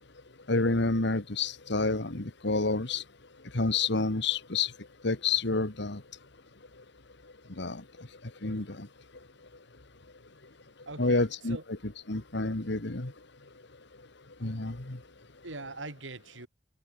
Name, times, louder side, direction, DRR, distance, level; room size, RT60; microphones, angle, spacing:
voice 1, 0.5-3.0 3.5-4.7 5.0-6.0 7.6-8.1 8.4-8.9 11.0-11.6 11.8-13.1 14.4-15.0, left 3 dB, 65° left, 1.9 m, -29 dB
voice 2, 10.9-11.6 15.4-16.5, right 3 dB, 75° right, 3.0 m, -42 dB
head